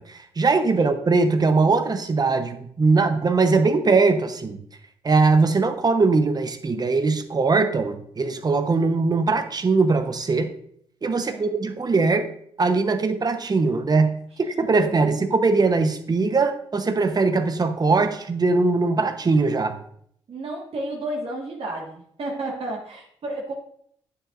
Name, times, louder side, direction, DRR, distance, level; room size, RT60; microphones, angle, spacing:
voice 1, 0.0-4.6 5.0-10.5 11.0-12.3 12.6-19.8, right 3 dB, 35° right, 8 dB, 1.0 m, -21 dB
voice 2, 11.2-11.5 14.7-15.1 20.3-23.5, right 2 dB, 60° right, -2 dB, 1.7 m, -32 dB
9.9 x 7.6 x 2.6 m, 0.66 s
cardioid pair, 70°, 11 cm